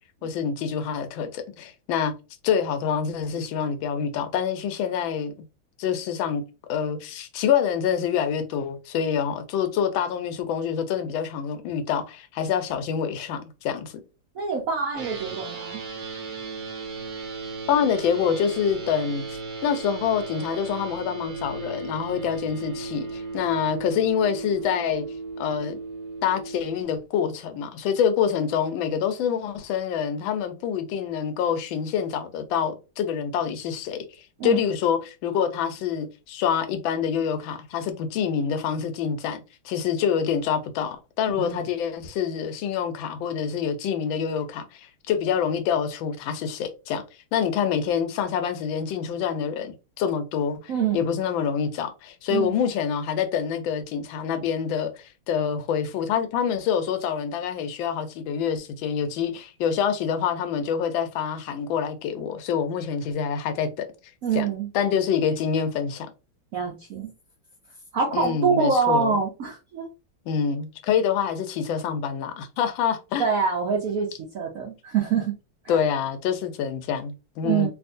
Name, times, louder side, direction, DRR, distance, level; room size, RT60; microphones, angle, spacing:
voice 1, 0.2-2.1 2.4-5.3 5.8-6.4 6.7-13.9 17.7-25.0 25.4-25.8 26.2-47.0 47.3-63.9 64.3-64.5 64.7-66.1 68.1-69.2 70.3-73.3 75.7-77.7, left 7 dB, 75° left, 1.3 m, -26 dB
voice 2, 14.3-15.8 34.4-34.6 41.4-41.6 50.7-51.0 52.3-52.5 64.2-64.7 66.5-67.1 67.9-69.8 73.2-75.3 75.6-75.8 77.4-77.7, right 6 dB, 75° right, 0.7 m, -25 dB
sound 1, 14.9-26.8, right 4 dB, 55° right, 1.4 m, -36 dB
3.5 x 2.6 x 2.5 m
omnidirectional pair, 2.3 m